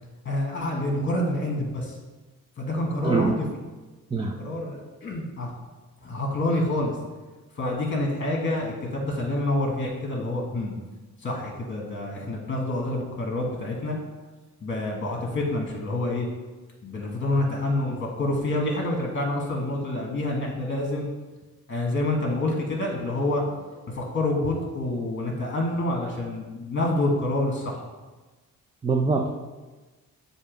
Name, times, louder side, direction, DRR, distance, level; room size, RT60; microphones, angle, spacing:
voice 1, 0.2-1.9 2.6-3.3 4.4-5.5 6.0-7.0 7.6-10.7 11.2-14.0 14.6-16.3 16.8-21.1 21.7-27.8, left 1 dB, 35° left, 0 dB, 1.4 m, -27 dB
voice 2, 3.0-3.4 4.1-4.4 28.8-29.4, right 4 dB, 15° right, 1 dB, 0.4 m, -23 dB
7.2 x 2.7 x 5.0 m, 1.2 s
cardioid pair, 110°, 35 cm